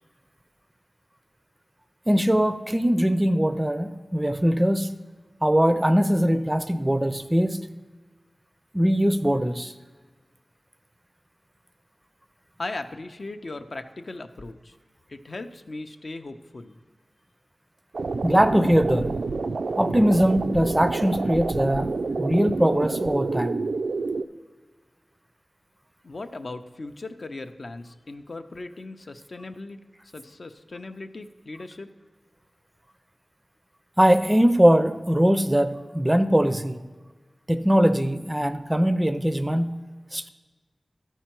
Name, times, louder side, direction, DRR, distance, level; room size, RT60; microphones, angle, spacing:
voice 1, 2.1-4.9 5.4-7.6 8.7-9.7 18.2-19.2 19.8-23.6 34.0-36.8 37.5-39.8 40.1-40.3, equal, 15° right, 10 dB, 0.4 m, -21 dB
voice 2, 12.6-14.8 15.1-16.8 26.0-29.8 30.1-31.9, left 2 dB, 60° left, 7 dB, 0.5 m, -38 dB
sound 1, 17.9-24.2, right 3 dB, 90° right, 0.3 m, -28 dB
12.5 x 4.6 x 4.4 m, 1.3 s
wide cardioid pair, 70°, 0 cm